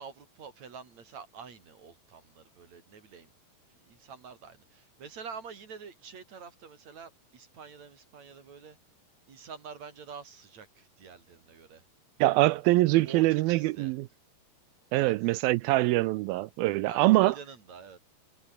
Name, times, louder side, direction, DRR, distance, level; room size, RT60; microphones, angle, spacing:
voice 1, 0.0-3.3 3.8-8.8 9.3-11.8 13.0-13.9 14.9-15.1 16.9-18.0, right 6 dB, 45° right, 4.4 m, -46 dB
voice 2, 12.2-14.1 14.9-17.3, right 19 dB, 80° right, 2.2 m, -24 dB
omnidirectional pair, 4.7 m